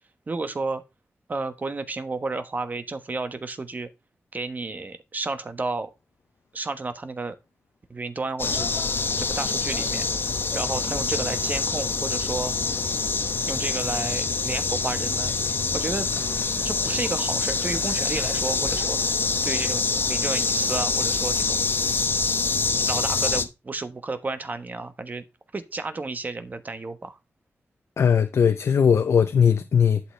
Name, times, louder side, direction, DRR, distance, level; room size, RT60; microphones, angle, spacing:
voice 1, 0.3-0.8 1.3-3.9 4.3-5.9 6.5-7.3 7.9-8.7 9.2-10.1 10.5-12.5 13.5-15.4 15.7-16.1 16.6-19.0 19.4-21.6 22.8-25.2 25.5-27.2, right 3 dB, 40° right, 1.2 m, -31 dB
sound 1, 8.4-23.5, left 4 dB, 50° left, 1.0 m, -25 dB
voice 2, 28.0-30.0, left 7 dB, 80° left, 0.6 m, -19 dB
11.5 x 6.0 x 3.2 m
wide cardioid pair, 130°, 5 cm